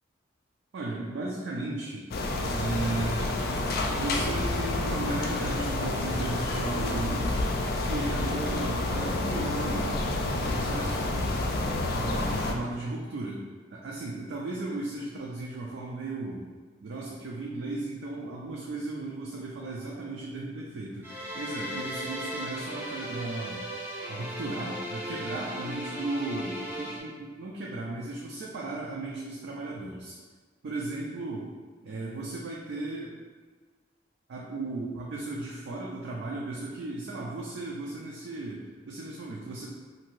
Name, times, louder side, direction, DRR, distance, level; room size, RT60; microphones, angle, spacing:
voice 1, 0.7-2.0 2.5-3.4 3.9-7.4 7.8-11.5 11.9-13.4 13.7-16.5 16.8-23.7 24.1-30.2 30.6-31.5 31.8-33.1 34.3-39.7, right 2 dB, 65° right, -3 dB, 0.4 m, -35 dB
sound 1, 2.1-12.5, left 2 dB, 55° left, 0.3 m, -29 dB
sound 2, 21.0-27.0, equal, 10° right, 0.5 m, -36 dB
2.8 x 2.5 x 3.0 m, 1.4 s
head